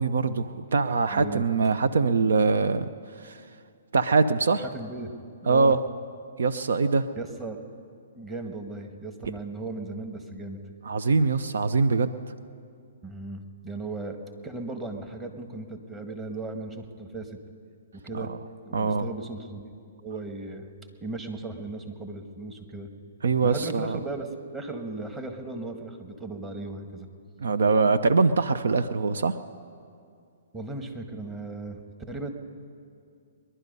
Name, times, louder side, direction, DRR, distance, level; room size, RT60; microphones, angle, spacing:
voice 1, 0.0-2.9 3.2-3.4 3.9-4.6 5.5-5.8 6.4-7.1 10.8-12.1 18.1-18.3 18.7-19.1 23.2-24.0 27.4-29.4, right 4 dB, 75° right, 12 dB, 0.5 m, -23 dB
voice 2, 1.1-1.5 4.7-5.1 5.4-5.8 7.1-7.6 8.1-10.6 13.0-14.2 14.4-17.4 18.0-18.3 18.6-19.7 20.0-20.7 21.0-22.9 23.4-27.1 30.5-31.8 32.1-32.3, right 2 dB, 15° right, 4 dB, 1.5 m, -36 dB
21.5 x 11.0 x 5.4 m, 2.4 s
hypercardioid pair, 130°, 0 cm